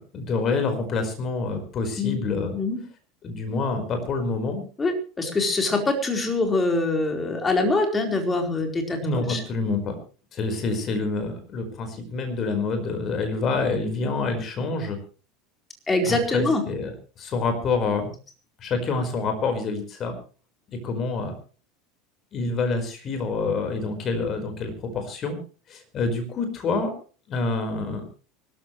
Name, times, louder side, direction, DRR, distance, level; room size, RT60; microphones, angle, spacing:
voice 1, 0.0-2.6 3.2-4.6 9.0-10.0 10.3-15.0 16.0-18.1 18.6-20.1 20.7-21.3 22.3-25.4 25.7-26.9 27.3-28.1, left 3 dB, 40° left, 7 dB, 4.9 m, -27 dB
voice 2, 4.8-9.0 9.3-9.4 15.9-16.6, left 2 dB, 20° left, 4 dB, 4.5 m, -24 dB
24.5 x 13.5 x 3.3 m, 0.37 s
figure-of-eight pair, 75°, 0 cm